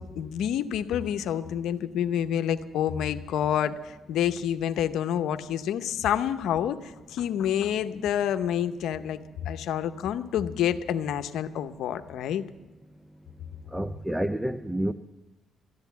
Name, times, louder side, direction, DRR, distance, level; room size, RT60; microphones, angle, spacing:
voice 1, 0.0-12.4, left 9 dB, 80° left, 10 dB, 0.7 m, -28 dB
voice 2, 13.7-14.9, right 1 dB, 10° right, 11 dB, 0.5 m, -29 dB
14.0 x 10.5 x 8.1 m, 1.1 s
cardioid pair, 90°, 0 cm